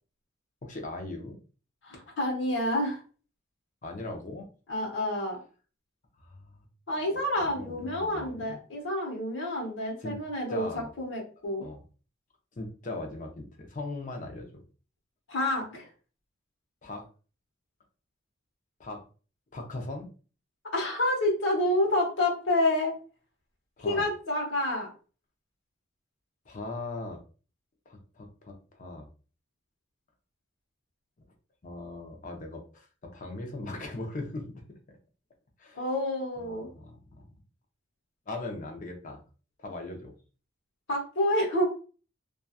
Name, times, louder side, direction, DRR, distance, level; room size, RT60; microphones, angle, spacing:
voice 1, 0.6-1.4 3.8-4.5 6.2-6.6 7.1-7.2 7.4-8.6 10.0-10.2 10.5-10.9 11.6-11.8 12.6-14.6 16.8-17.1 18.8-19.0 19.5-20.1 23.8-24.0 26.5-27.2 27.9-29.1 31.6-35.0 35.6-35.8 36.4-37.3 38.3-39.2 39.6-40.1, left 2 dB, 40° left, 3 dB, 0.6 m, -39 dB
voice 2, 1.8-3.0 4.7-5.4 6.9-11.6 15.3-15.9 20.7-23.0 23.8-24.9 35.7-36.7 40.9-41.7, left 1 dB, 70° left, -2 dB, 0.9 m, -28 dB
2.7 x 2.3 x 2.3 m, 0.37 s
head